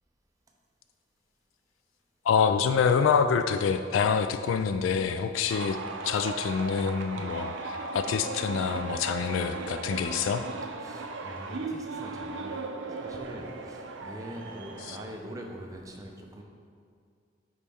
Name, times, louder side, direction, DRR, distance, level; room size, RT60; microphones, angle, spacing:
voice 1, 2.3-5.8 6.0-10.4 14.9-15.0, left 6 dB, 80° left, 9 dB, 0.3 m, -26 dB
sound 1, 5.5-15.0, right 3 dB, 65° right, 0.5 m, -37 dB
voice 2, 10.8-12.6 12.9-16.4, equal, 15° right, 1 dB, 0.6 m, -43 dB
9.4 x 4.3 x 3.6 m, 2.3 s
head